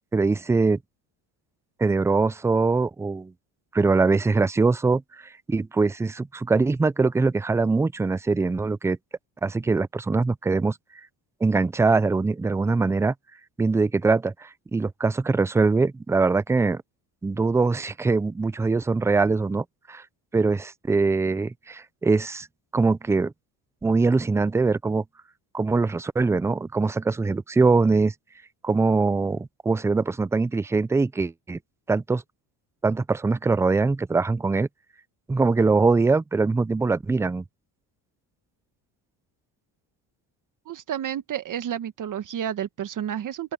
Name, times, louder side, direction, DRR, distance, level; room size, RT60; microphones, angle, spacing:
voice 1, 0.1-0.8 1.8-3.3 3.7-5.0 5.5-9.0 9.4-10.8 11.4-13.1 13.6-16.8 17.2-20.0 20.3-22.5 22.7-23.3 23.8-25.0 25.5-28.1 28.6-31.6 31.9-32.2 32.8-34.7 35.3-37.4, right 3 dB, 5° right, 0.3 m, -22 dB
voice 2, 40.7-43.5, right 9 dB, 50° right, 1.5 m, -31 dB
open air
cardioid pair, 115°, 41 cm